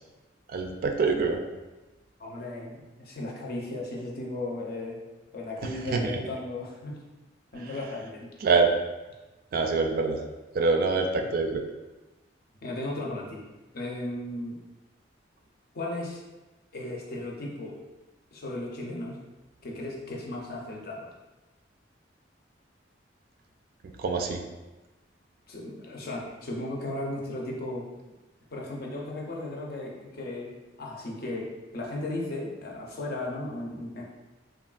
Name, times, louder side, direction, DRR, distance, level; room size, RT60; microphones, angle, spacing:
voice 1, 0.5-1.4 5.6-6.2 8.4-8.7 9.5-10.2 10.5-11.6 24.0-24.4, right 4 dB, 50° right, 4 dB, 0.3 m, -25 dB
voice 2, 2.2-5.0 5.3-7.0 7.5-8.3 11.5-11.6 12.6-13.4 13.7-14.6 15.7-16.2 16.7-17.7 18.3-19.2 19.6-21.1 25.5-27.9 28.5-34.0, left 2 dB, 55° left, -2 dB, 0.6 m, -36 dB
3.3 x 2.3 x 2.3 m, 1.1 s
head